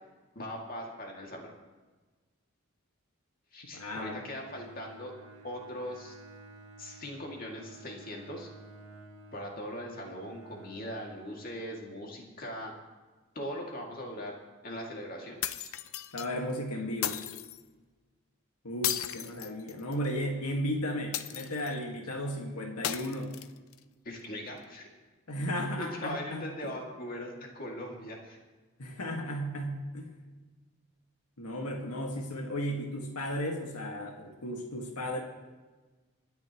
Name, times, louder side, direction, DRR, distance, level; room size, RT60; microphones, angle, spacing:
voice 1, 0.4-1.5 3.5-5.1 5.4-6.2 6.8-8.5 9.3-12.7 13.3-14.3 14.6-15.4 24.0-24.9 25.8-28.4 31.6-31.7, equal, 40° left, 0 dB, 2.3 m, -40 dB
voice 2, 3.7-4.2 16.1-17.2 18.6-23.4 25.3-26.7 28.8-30.1 31.4-35.2, equal, 90° left, 2 dB, 1.8 m, -35 dB
Bowed string instrument, 3.9-12.1, right 2 dB, 70° right, 2.2 m, -52 dB
sound 1, 15.4-16.3 17.0-17.6 18.8-20.1 21.1-21.8 22.8-23.8, left 11 dB, 70° left, 0.6 m, -35 dB
26.5 x 10.0 x 3.1 m, 1.3 s
head